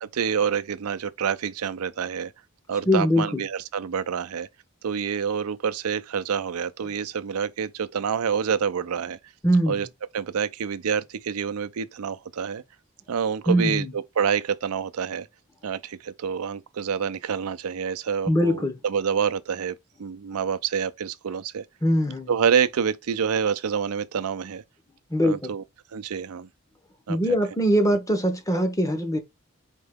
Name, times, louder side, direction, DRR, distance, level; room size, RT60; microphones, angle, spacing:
voice 1, 0.0-2.3 2.7-4.5 4.8-9.2 9.7-9.9 10.1-12.6 13.1-13.9 14.2-15.3 15.6-21.6 22.3-24.6 25.2-25.6 25.9-26.5 27.1-27.2, right 7 dB, 90° right, 0.5 m, -27 dB
voice 2, 2.9-3.4 9.4-9.8 13.5-13.9 18.3-18.7 21.8-22.3 25.1-25.5 27.1-29.2, equal, 15° left, 0.7 m, -22 dB
4.4 x 2.8 x 3.5 m
head